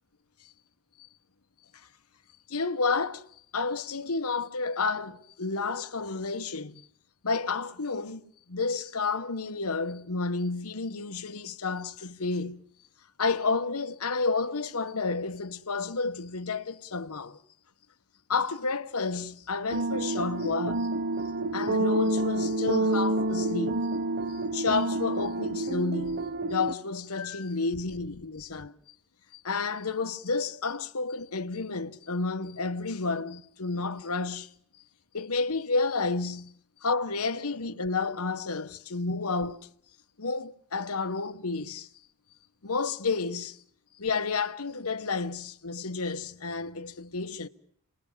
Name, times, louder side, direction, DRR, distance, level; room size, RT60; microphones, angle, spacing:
voice 1, 2.5-3.2 3.5-6.8 7.2-8.2 8.5-12.6 13.2-17.4 18.3-21.0 21.5-23.9 24.3-28.8 29.3-34.5 35.1-39.7 40.2-41.9 42.6-43.6 44.0-47.5, left 4 dB, 90° left, 1.3 m, -31 dB
sound 1, 19.7-26.7, right 2 dB, 50° right, 1.0 m, -28 dB
29.5 x 21.0 x 7.4 m
head